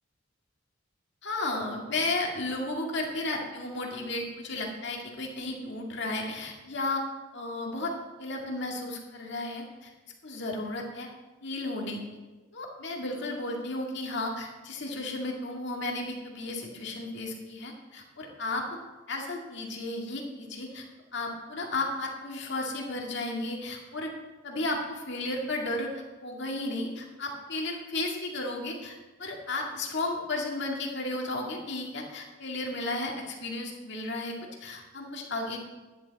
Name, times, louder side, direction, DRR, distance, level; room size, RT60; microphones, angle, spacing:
voice 1, 1.2-7.0 7.3-9.9 10.2-11.1 11.4-12.0 12.5-18.7 19.1-20.8 21.1-24.1 24.4-34.3 34.6-35.6, left 2 dB, 60° left, 0 dB, 2.1 m, -33 dB
10.5 x 10.5 x 4.2 m, 1.2 s
head